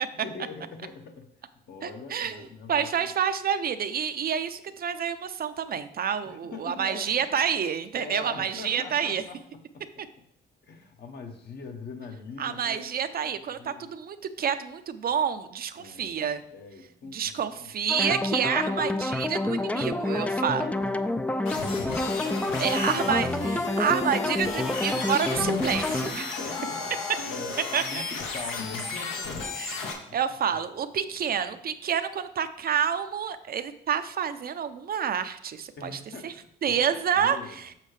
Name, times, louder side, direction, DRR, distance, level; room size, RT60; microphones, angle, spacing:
voice 1, 0.1-1.3 1.7-3.1 6.2-7.4 7.9-10.1 10.6-13.9 15.8-16.2 16.5-17.8 20.6-22.0 22.4-23.2 26.1-30.2 30.5-30.7 31.0-31.6 35.8-37.7, left 4 dB, 55° left, 4 dB, 1.2 m, -43 dB
voice 2, 1.8-9.2 12.4-16.4 17.1-20.7 22.6-23.3 23.8-26.3 27.7-28.0 29.6-29.8 30.1-35.9 36.2-36.3 36.6-37.6, right 8 dB, 50° right, 10 dB, 0.5 m, -28 dB
sound 1, 17.9-26.1, left 2 dB, 5° left, 0.3 m, -28 dB
sound 2, 21.5-29.9, left 4 dB, 85° left, 1.3 m, -33 dB
7.4 x 6.3 x 3.3 m, 0.72 s
cardioid pair, 90°, 20 cm